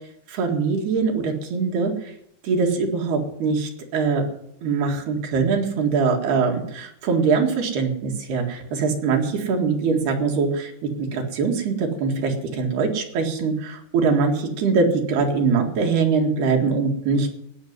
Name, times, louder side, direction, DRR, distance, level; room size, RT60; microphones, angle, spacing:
voice 1, 0.3-2.1 2.4-4.2 4.6-17.3, right 4 dB, 65° right, 2 dB, 3.7 m, -22 dB
17.0 x 6.6 x 9.6 m, 0.73 s
omnidirectional pair, 5.3 m